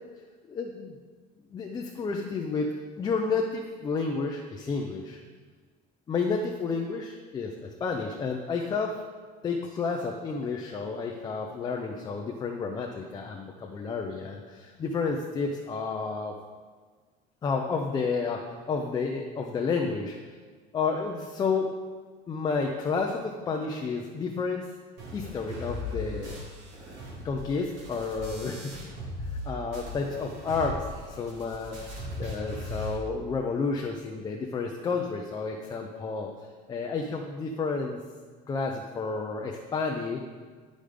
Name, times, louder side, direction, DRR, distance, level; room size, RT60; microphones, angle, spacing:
voice 1, 0.5-0.9 1.5-5.2 6.1-9.0 9.4-16.3 17.4-20.2 20.7-21.7 22.3-24.7 25.1-26.4 27.2-28.7 29.5-36.3 36.7-38.0 38.5-40.2, left 4 dB, 20° left, 1 dB, 0.6 m, -31 dB
sound 1, 25.0-29.5 29.7-33.0, left 1 dB, 70° right, 3.1 m, -38 dB
11.0 x 5.2 x 5.1 m, 1.5 s
cardioid pair, 170°, 19 cm